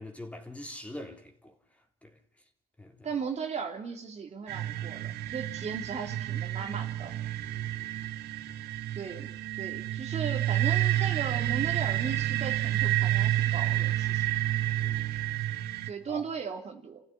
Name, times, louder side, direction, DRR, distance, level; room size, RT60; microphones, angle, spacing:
voice 1, 0.0-1.6 2.0-2.2 2.8-3.1 7.4-8.1 8.5-8.6 14.8-15.1 16.1-16.2, left 1 dB, 10° left, 3.7 m, -44 dB
voice 2, 3.0-7.2 8.9-14.3 15.9-17.0, right 6 dB, 40° right, 3.0 m, -37 dB
sound 1, 4.5-15.9, right 14 dB, 80° right, 1.6 m, -29 dB
30.0 x 15.5 x 9.9 m
cardioid pair, 110°, 17 cm